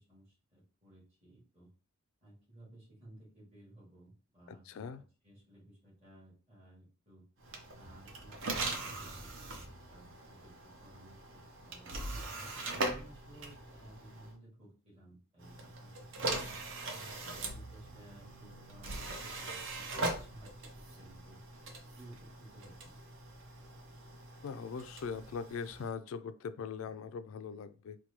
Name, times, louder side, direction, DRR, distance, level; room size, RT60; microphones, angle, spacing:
voice 1, 0.0-1.7 2.2-4.9 5.2-7.2 7.7-12.2 12.7-16.6 17.2-21.4 21.9-23.0, right 1 dB, 30° right, 1.8 m, -57 dB
voice 2, 4.5-5.0 24.4-28.0, left 6 dB, 70° left, 0.3 m, -41 dB
sound 1, 7.4-14.3 15.4-25.9, right 2 dB, 60° right, 0.6 m, -41 dB
4.5 x 2.2 x 2.9 m
head